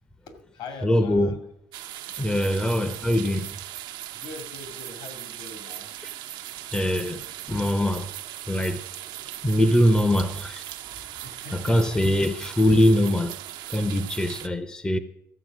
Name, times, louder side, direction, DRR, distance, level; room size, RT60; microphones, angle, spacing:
voice 1, 0.3-1.4 2.3-2.7 4.1-5.9 11.2-12.2, left 4 dB, 70° left, 2.4 m, -42 dB
voice 2, 0.8-1.4 2.2-3.5 6.7-8.1 8.5-8.8 9.4-10.6 11.5-13.3 13.7-15.0, equal, 10° left, 0.7 m, -22 dB
sound 1, 1.7-14.5, right 12 dB, 65° right, 0.7 m, -38 dB
13.5 x 7.0 x 6.1 m
supercardioid pair, 90°, 9 cm